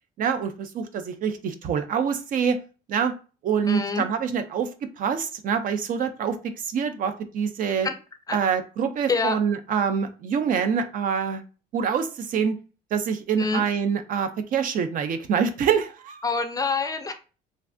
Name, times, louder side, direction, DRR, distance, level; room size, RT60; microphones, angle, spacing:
voice 1, 0.2-2.6 2.9-3.2 3.4-7.9 8.3-11.4 11.7-12.5 12.9-16.2, right 7 dB, 55° right, 9 dB, 0.5 m, -25 dB
voice 2, 3.7-4.1 7.8-7.9 8.3-8.4 9.1-9.4 13.4-13.6 16.2-17.1, left 4 dB, 20° left, 8 dB, 0.4 m, -26 dB
3.2 x 2.4 x 2.5 m, 0.34 s
cardioid pair, 110°, 17 cm